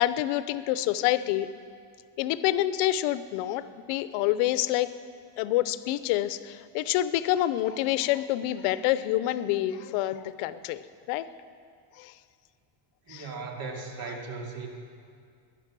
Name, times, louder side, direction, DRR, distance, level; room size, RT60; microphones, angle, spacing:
voice 1, 0.0-1.5 2.2-4.9 5.4-10.8 11.1-11.3 12.0-12.1 13.1-13.2, left 14 dB, 90° left, 14 dB, 0.8 m, -27 dB
voice 2, 13.1-14.7, right 4 dB, 45° right, 1 dB, 2.4 m, -37 dB
18.0 x 11.0 x 6.1 m, 2.3 s
cardioid pair, 145°, 50 cm